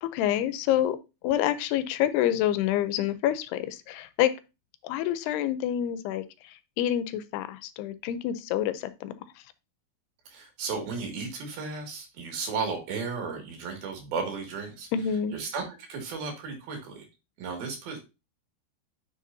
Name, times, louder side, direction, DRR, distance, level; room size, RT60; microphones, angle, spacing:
voice 1, 0.0-1.0 1.2-4.3 4.8-9.1 14.9-15.4, left 11 dB, 85° left, 13 dB, 2.7 m, -27 dB
voice 2, 10.3-14.9 15.3-17.1 17.4-18.0, right 4 dB, 70° right, 2 dB, 4.0 m, -34 dB
10.0 x 6.3 x 2.7 m, 0.27 s
omnidirectional pair, 4.6 m